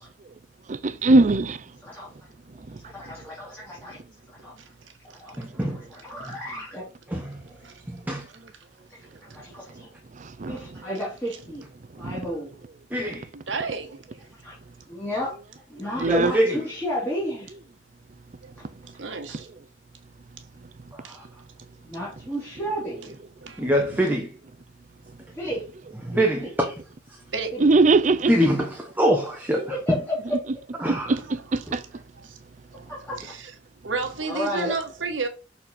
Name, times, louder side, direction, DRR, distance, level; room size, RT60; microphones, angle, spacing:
voice 1, 0.7-1.6 10.2-10.6 12.0-12.2 16.0-16.3 23.6-23.7 27.6-28.3 30.9-31.8, right 3 dB, 40° right, 0.5 m, -20 dB
voice 2, 2.7-4.0 4.4-4.5 5.2-5.3 5.9-6.8 9.3-9.9 10.5-11.6 12.0-12.5 14.4-14.6 14.9-15.4 15.7-17.5 18.6-18.7 21.8-23.1 25.4-25.7 26.1-26.5 27.5-27.7 29.5-30.4 32.9-33.2 34.3-34.7, equal, 10° left, 2.6 m, -32 dB
voice 3, 5.4-5.8 7.1-7.4 7.9-8.2 12.9-13.3 15.9-16.6 21.2-21.3 23.6-24.3 26.0-26.5 28.3-30.0 30.8-31.1, equal, 10° right, 0.9 m, -24 dB
voice 4, 13.5-14.0 18.4-18.5 19.0-19.5 23.5-23.6 27.3-27.5 32.2-32.4 32.7-32.9 33.2-33.5 33.8-35.3, right 4 dB, 90° right, 1.5 m, -31 dB
6.6 x 4.3 x 4.2 m
head